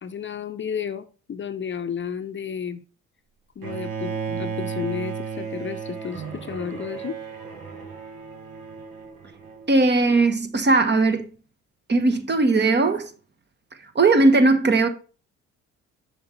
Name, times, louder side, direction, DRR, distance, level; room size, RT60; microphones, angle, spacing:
voice 1, 0.0-2.8 3.6-7.2, left 7 dB, 35° left, 0.6 m, -32 dB
Bowed string instrument, 3.6-9.7, right 6 dB, 75° right, 1.5 m, -34 dB
voice 2, 9.7-11.3 11.9-13.1 13.9-14.9, right 3 dB, 30° right, 1.0 m, -18 dB
6.9 x 5.4 x 3.1 m
hypercardioid pair, 55°, 33 cm